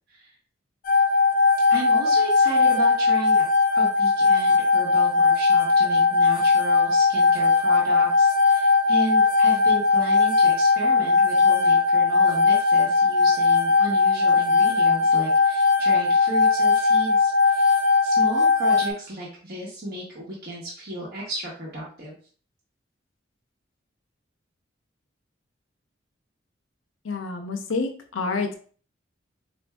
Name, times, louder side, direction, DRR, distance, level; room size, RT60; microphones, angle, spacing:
sound 1, 0.9-18.9, left 4 dB, 45° left, 0.4 m, -19 dB
voice 1, 1.7-3.5 3.7-22.1, right 1 dB, 55° right, -5 dB, 0.9 m, -34 dB
voice 2, 27.0-28.6, left 4 dB, 85° left, 4 dB, 0.6 m, -28 dB
4.3 x 2.6 x 2.3 m, 0.43 s
head